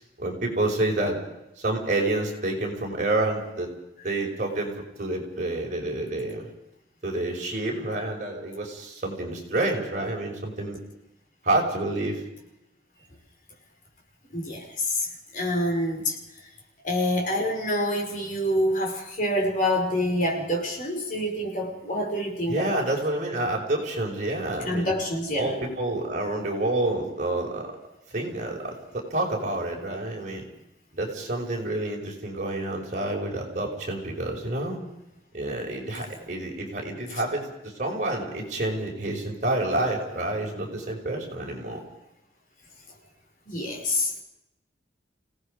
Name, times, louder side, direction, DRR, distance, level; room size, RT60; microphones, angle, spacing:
voice 1, 0.2-1.2 1.6-3.7 4.0-4.7 5.0-6.5 7.0-10.8 11.4-12.2 22.5-24.9 25.3-27.6 28.1-30.5 30.9-34.8 35.3-37.5 37.8-41.8, right 2 dB, 40° right, 0 dB, 5.4 m, -28 dB
voice 2, 14.3-16.2 16.8-22.9 24.6-25.6 43.5-44.2, left 1 dB, 45° left, 1 dB, 5.2 m, -27 dB
29.0 x 18.0 x 5.1 m, 0.88 s
head